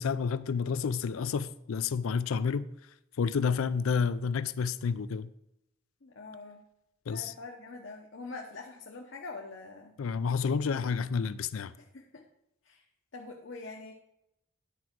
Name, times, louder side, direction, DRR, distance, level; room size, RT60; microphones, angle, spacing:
voice 1, 0.0-2.7 3.2-5.3 7.1-7.3 10.0-11.7, left 5 dB, 90° left, 0.4 m, -30 dB
voice 2, 6.0-6.6 7.1-9.9 11.8-12.2 12.6-12.8 13.1-13.9, left 3 dB, 65° left, 0.9 m, -44 dB
10.0 x 4.7 x 6.0 m
head